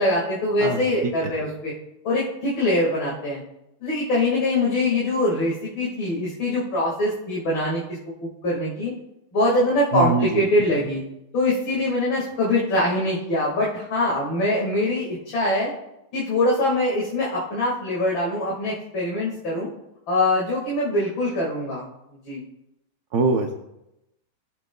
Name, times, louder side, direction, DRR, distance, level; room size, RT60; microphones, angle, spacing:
voice 1, 0.0-1.7 2.0-3.4 3.8-7.8 8.2-8.9 9.3-11.0 11.3-15.7 16.1-19.7 20.1-21.9 22.3-22.4, left 1 dB, 65° left, -5 dB, 2.6 m, -23 dB
voice 2, 0.6-1.3 9.9-10.5 23.1-23.5, right 4 dB, 65° right, 2 dB, 1.0 m, -23 dB
18.0 x 7.6 x 2.2 m, 0.87 s
omnidirectional pair, 2.3 m